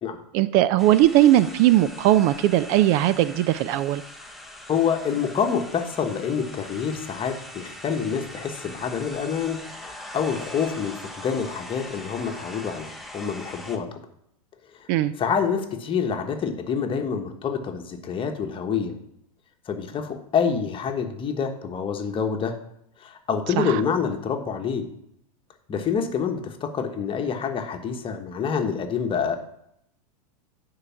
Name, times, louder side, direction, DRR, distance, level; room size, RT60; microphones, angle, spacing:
voice 1, 0.3-4.0 14.9-15.1 23.6-23.8, right 13 dB, 50° right, 15 dB, 0.5 m, -19 dB
sound 1, 0.8-13.8, left 1 dB, ahead, 1.0 m, -41 dB
voice 2, 4.7-14.0 14.8-14.9 15.2-18.9 19.7-22.6 23.0-24.9 25.7-29.4, left 6 dB, 25° left, 5 dB, 1.3 m, -27 dB
9.8 x 4.8 x 5.9 m, 0.74 s
hypercardioid pair, 110°, 19 cm